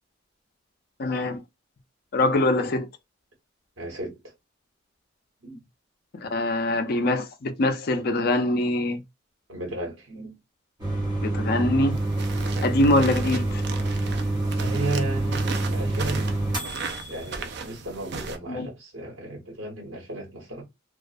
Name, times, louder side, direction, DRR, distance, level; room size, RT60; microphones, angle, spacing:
voice 1, 1.0-1.4 2.1-2.9 6.2-9.0 11.2-12.0 12.6-13.6 18.5-18.7, left 2 dB, 50° left, 0.4 m, -23 dB
voice 2, 3.8-4.2 5.4-5.6 9.5-10.4 14.5-16.2 17.1-20.6, right 2 dB, 80° right, 1.2 m, -34 dB
sound 1, 10.8-17.3, right 1 dB, 20° right, 0.8 m, -27 dB
sound 2, 11.9-18.4, right 5 dB, 55° right, 0.4 m, -36 dB
2.3 x 2.1 x 2.4 m
head